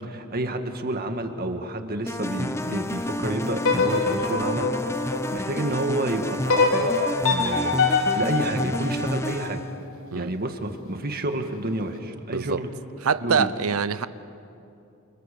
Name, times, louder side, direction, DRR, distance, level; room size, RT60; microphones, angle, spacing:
voice 1, 0.0-9.6 10.1-12.7 13.2-13.5, right 1 dB, 45° right, 6 dB, 2.0 m, -30 dB
sound 1, 2.1-9.7, left 1 dB, 10° left, 0.9 m, -30 dB
sound 2, 3.6-5.8 6.5-9.6, left 4 dB, 75° left, 3.0 m, -24 dB
voice 2, 13.0-14.1, right 6 dB, 75° right, 15 dB, 0.7 m, -24 dB
29.5 x 29.0 x 6.9 m, 2.6 s
head